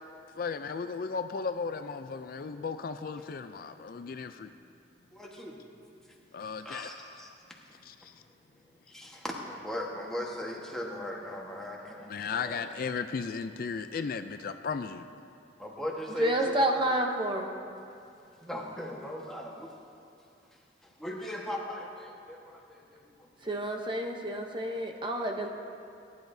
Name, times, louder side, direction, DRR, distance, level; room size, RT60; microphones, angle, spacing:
voice 1, 0.4-4.3 6.3-6.9 12.1-15.0, left 5 dB, 50° left, 9 dB, 0.4 m, -35 dB
voice 2, 5.1-5.6 6.4-7.3 8.9-12.6 15.6-16.8 18.4-19.7 20.8-23.6, left 1 dB, 5° left, -3 dB, 1.3 m, -39 dB
voice 3, 16.2-17.5 23.4-25.5, right 1 dB, 25° right, 2 dB, 0.8 m, -29 dB
19.5 x 11.0 x 2.7 m, 2.5 s
head